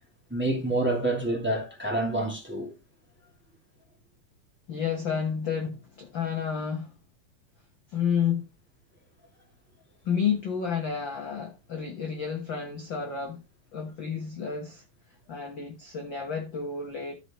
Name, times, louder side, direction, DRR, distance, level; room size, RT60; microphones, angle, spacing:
voice 1, 0.3-2.7, right 2 dB, 5° right, 2.2 m, -27 dB
voice 2, 4.7-6.9 7.9-8.4 10.0-13.4 13.7-14.8 15.3-17.1, left 7 dB, 55° left, 1.3 m, -30 dB
13.0 x 5.0 x 4.4 m
omnidirectional pair, 3.9 m